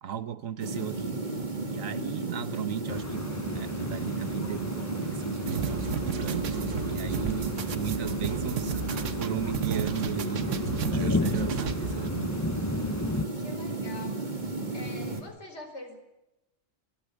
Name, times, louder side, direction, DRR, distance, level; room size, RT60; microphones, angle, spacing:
voice 1, 0.0-1.1 1.7-10.5 10.9-12.4, right 9 dB, 85° right, 1.4 m, -36 dB
sound 1, 0.6-15.2, right 2 dB, 35° right, 2.7 m, -34 dB
sound 2, 2.9-13.3, left 2 dB, 15° left, 0.6 m, -35 dB
sound 3, 5.5-12.1, right 7 dB, 70° right, 1.3 m, -33 dB
voice 2, 13.4-14.2 14.7-16.0, left 2 dB, 60° left, 5.0 m, -43 dB
24.5 x 15.5 x 8.4 m
omnidirectional pair, 1.3 m